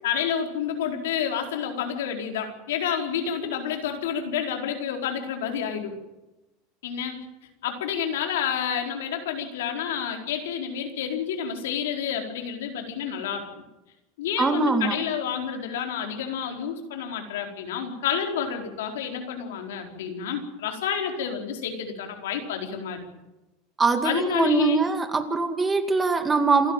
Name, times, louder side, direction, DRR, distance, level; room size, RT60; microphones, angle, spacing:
voice 1, 0.0-5.9 6.8-7.2 7.6-13.6 14.2-23.1 24.0-24.8, left 8 dB, 90° left, 3 dB, 4.4 m, -29 dB
voice 2, 14.4-15.0 23.8-26.7, right 4 dB, 15° right, 8 dB, 2.2 m, -22 dB
27.5 x 11.5 x 9.0 m, 1.0 s
supercardioid pair, 135°, 0 cm